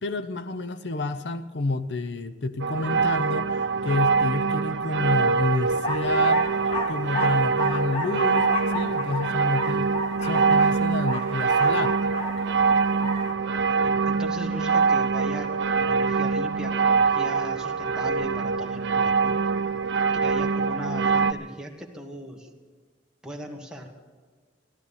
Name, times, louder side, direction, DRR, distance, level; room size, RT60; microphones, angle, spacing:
voice 1, 0.0-6.4 6.9-10.0 10.2-12.0, left 2 dB, 65° left, 11 dB, 0.6 m, -29 dB
sound 1, 2.6-21.3, right 5 dB, 70° right, 0.7 m, -24 dB
sound 2, 5.7-13.3, left 2 dB, 30° left, 1.4 m, -33 dB
voice 2, 13.8-15.5 15.8-19.3 20.2-22.5 23.2-23.9, equal, 5° right, 0 dB, 1.5 m, -38 dB
15.5 x 12.0 x 7.0 m, 1.5 s
head